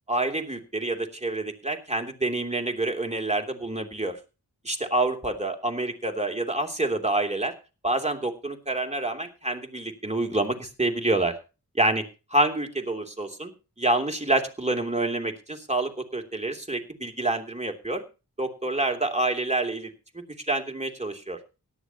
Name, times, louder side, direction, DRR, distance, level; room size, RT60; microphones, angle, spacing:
voice 1, 0.1-4.2 4.6-7.5 7.8-11.4 11.7-12.0 12.3-13.5 13.8-18.0 18.4-21.4, right 2 dB, 15° right, 3 dB, 3.0 m, -27 dB
17.5 x 12.5 x 2.9 m, 0.31 s
wide cardioid pair, 45°, 39 cm